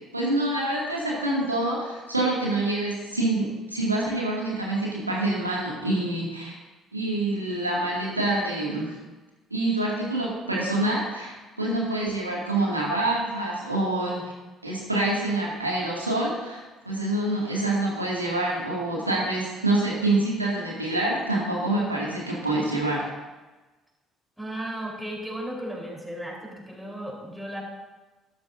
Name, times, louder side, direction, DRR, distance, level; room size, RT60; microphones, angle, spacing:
voice 1, 0.1-6.6 6.9-9.0 9.5-14.3 14.6-23.0, right 2 dB, 85° right, -4 dB, 2.2 m, -26 dB
voice 2, 24.4-27.6, right 1 dB, 5° right, -2 dB, 4.0 m, -35 dB
13.0 x 12.5 x 2.7 m, 1.2 s
figure-of-eight pair, 50°, 0 cm